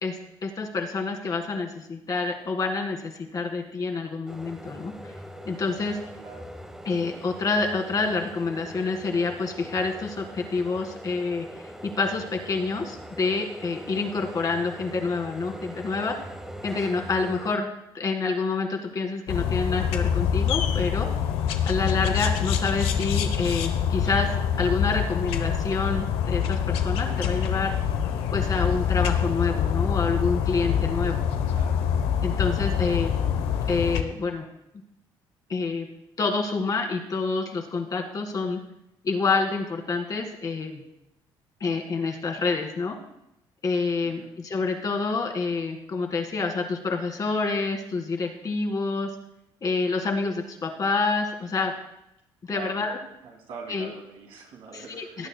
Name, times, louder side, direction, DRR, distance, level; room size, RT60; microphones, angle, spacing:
voice 1, 0.0-5.1 5.5-6.0 6.9-16.2 16.6-17.7 17.9-21.1 21.7-27.7 28.3-31.2 32.2-33.1 33.7-34.4 35.5-35.9 36.2-38.6 39.0-40.8 41.6-43.0 43.6-49.1 49.6-51.7 52.5-53.0 53.7-53.9 54.7-55.3, left 4 dB, 40° left, 2 dB, 1.9 m, -27 dB
sound 1, 4.3-17.5, equal, 5° right, 1.0 m, -42 dB
voice 2, 6.2-6.5 31.4-31.8 32.8-33.1 44.0-44.3 52.4-52.9 53.2-55.3, right 5 dB, 80° right, 0 dB, 2.6 m, -44 dB
sound 2, 19.3-34.0, left 8 dB, 90° left, 0.8 m, -25 dB
18.0 x 9.0 x 2.2 m, 0.84 s
cardioid pair, 95°, 9 cm